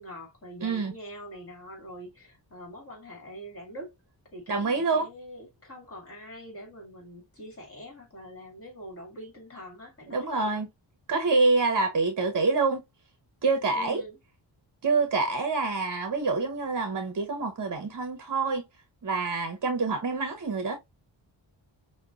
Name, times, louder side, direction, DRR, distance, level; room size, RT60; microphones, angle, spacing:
voice 1, 0.0-3.9 4.3-10.6 13.7-14.2, equal, 30° left, 2.1 m, -44 dB
voice 2, 0.6-0.9 4.5-5.1 10.1-10.7 11.1-12.8 13.4-14.0 14.8-18.6 19.0-20.8, right 3 dB, 45° right, 0.8 m, -26 dB
5.8 x 2.3 x 2.4 m
wide cardioid pair, 145°, 45 cm